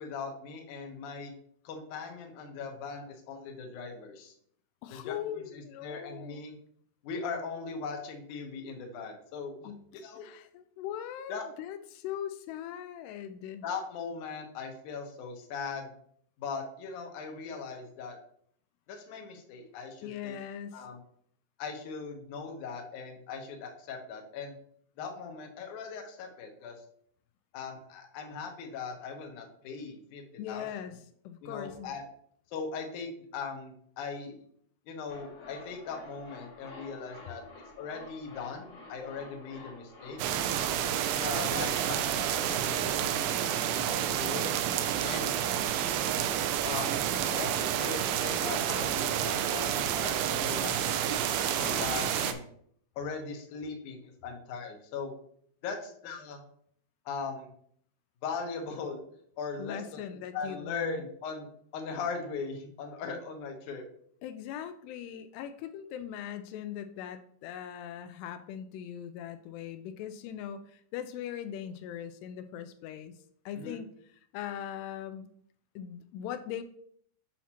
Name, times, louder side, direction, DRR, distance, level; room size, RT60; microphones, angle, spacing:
voice 1, 0.0-1.3 1.6-4.3 4.9-6.6 7.0-10.3 11.3-11.4 13.6-15.9 16.4-18.2 18.9-20.4 20.7-21.0 21.6-24.6 25.0-26.8 27.5-30.7 31.4-32.0 32.5-34.4 34.9-37.4 37.8-40.2 40.6-44.5 45.0-45.3 46.6-47.0 47.3-52.4 53.0-55.1 55.6-56.4 57.1-57.5 58.2-59.0 59.4-60.0 60.3-61.5 61.7-63.8 73.6-73.8, left 5 dB, 65° left, 2 dB, 2.0 m, -39 dB
voice 2, 4.8-6.4 9.7-9.8 10.2-11.3 11.6-13.7 20.0-20.8 30.4-30.9 31.3-31.9 59.6-61.0 64.2-73.1 73.5-73.9 74.3-75.3 75.8-76.6, left 10 dB, 85° left, 10 dB, 2.6 m, -40 dB
sound 1, 35.1-43.9 44.2-44.3, left 3 dB, 50° left, 1.9 m, -50 dB
sound 2, 40.2-52.3, right 10 dB, 80° right, 2.2 m, -29 dB
sound 3, 50.4-52.3, right 1 dB, 35° right, 0.5 m, -47 dB
8.3 x 5.7 x 2.9 m, 0.64 s
omnidirectional pair, 4.7 m